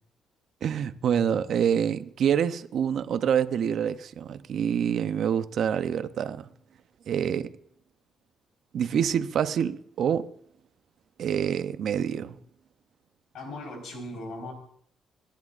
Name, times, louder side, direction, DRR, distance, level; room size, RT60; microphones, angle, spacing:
voice 1, 0.6-6.4 7.1-7.5 8.7-10.3 11.2-12.4, right 8 dB, 65° right, 0.7 m, -26 dB
voice 2, 13.3-14.5, left 1 dB, 70° left, 4.4 m, -38 dB
26.5 x 10.5 x 2.5 m
cardioid pair, 90°, 0 cm